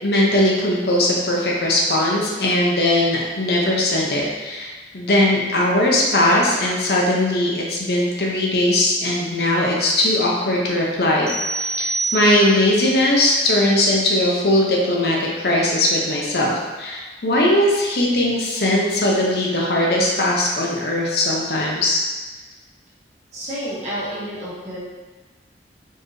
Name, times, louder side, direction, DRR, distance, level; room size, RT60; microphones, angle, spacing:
voice 1, 0.0-22.0, left 1 dB, 60° left, -3 dB, 0.8 m, -19 dB
sound 1, 11.3-12.8, right 3 dB, 5° left, 0.6 m, -26 dB
voice 2, 23.3-24.8, equal, 40° right, -8 dB, 1.4 m, -30 dB
4.4 x 3.1 x 3.1 m, 1.2 s
head